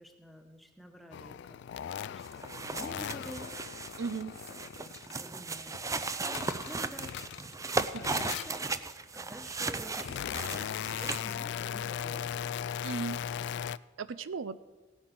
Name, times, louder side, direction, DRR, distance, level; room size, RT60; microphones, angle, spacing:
voice 1, 0.0-3.6 4.0-4.3 4.7-7.2 7.6-8.7 9.1-12.4, equal, ahead, 4 dB, 1.2 m, -49 dB
sound 1, 1.1-5.2 5.6-7.6 8.0-8.8 9.5-13.8, left 9 dB, 65° left, 0.3 m, -38 dB
sound 2, 2.2-11.3, right 3 dB, 15° right, 0.5 m, -36 dB
voice 2, 4.0-4.3 7.7-8.0 12.8-13.2 14.0-14.6, right 4 dB, 85° right, 14 dB, 0.5 m, -36 dB
17.0 x 8.8 x 6.1 m, 1.2 s
head